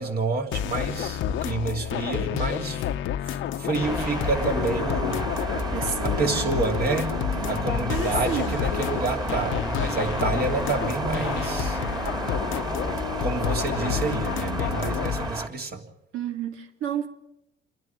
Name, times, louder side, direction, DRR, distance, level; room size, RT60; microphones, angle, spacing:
voice 1, 0.0-2.9 3.3-5.7 6.0-11.8 13.2-15.9, right 3 dB, 50° right, 3.0 m, -29 dB
sound 1, 0.5-15.3, left 10 dB, 85° left, 0.9 m, -29 dB
sound 2, 3.8-15.5, right 2 dB, 20° right, 2.3 m, -31 dB
voice 2, 5.5-6.4 7.3-8.6 16.1-17.1, right 7 dB, 85° right, 2.5 m, -31 dB
29.0 x 11.0 x 8.8 m
cardioid pair, 90°, 20 cm